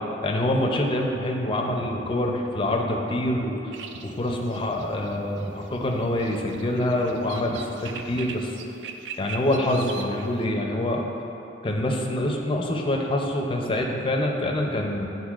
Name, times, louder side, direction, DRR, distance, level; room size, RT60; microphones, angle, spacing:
voice 1, 0.2-3.7 4.0-8.5 9.2-11.1 11.6-15.1, left 1 dB, 30° left, 0 dB, 0.5 m, -25 dB
sound 1, 3.7-10.4, right 6 dB, 75° right, 0.4 m, -41 dB
9.8 x 3.9 x 2.4 m, 3.0 s
head